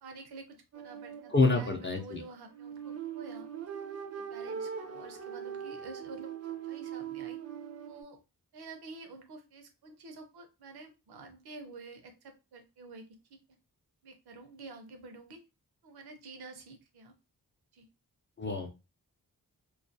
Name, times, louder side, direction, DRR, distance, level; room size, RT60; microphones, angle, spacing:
voice 1, 0.0-3.5 4.2-6.3 6.7-7.4 7.8-8.2 8.5-13.4 14.0-15.4 15.8-17.1 17.7-17.9, right 3 dB, 85° right, 5 dB, 0.6 m, -49 dB
sound 1, 0.7-8.0, right 8 dB, 40° right, 0.4 m, -41 dB
voice 2, 1.3-2.2 18.4-18.9, left 3 dB, 30° left, 2 dB, 0.4 m, -28 dB
2.3 x 2.2 x 2.6 m, 0.27 s
wide cardioid pair, 110°, 37 cm